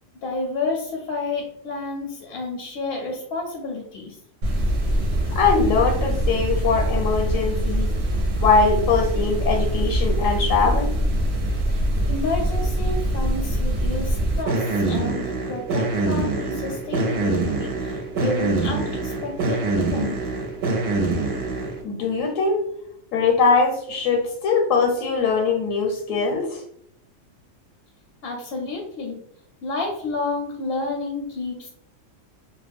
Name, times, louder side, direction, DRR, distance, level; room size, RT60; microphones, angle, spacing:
voice 1, 0.2-4.2 11.7-11.8 12.1-20.2 28.2-29.2 29.6-31.7, left 3 dB, 65° left, 1 dB, 0.7 m, -30 dB
sound 1, 4.4-21.8, right 1 dB, 65° right, 0.8 m, -24 dB
voice 2, 5.3-8.0 8.4-10.9 21.8-22.6 23.1-26.6, left 4 dB, 80° left, 1 dB, 1.0 m, -21 dB
2.3 x 2.0 x 3.4 m, 0.72 s
omnidirectional pair, 1.3 m